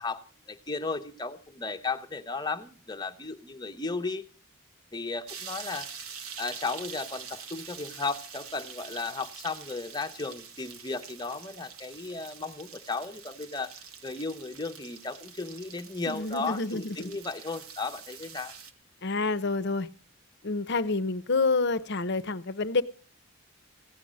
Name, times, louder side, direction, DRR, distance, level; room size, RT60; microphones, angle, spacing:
voice 1, 0.0-4.2 4.9-5.9 6.4-13.7 14.0-18.5, left 3 dB, 20° left, 0.8 m, -35 dB
sound 1, 5.3-18.7, right 6 dB, 90° right, 1.4 m, -45 dB
voice 2, 16.1-17.1 19.0-19.9 20.4-22.8, left 3 dB, 50° left, 0.7 m, -28 dB
16.0 x 10.0 x 6.3 m
head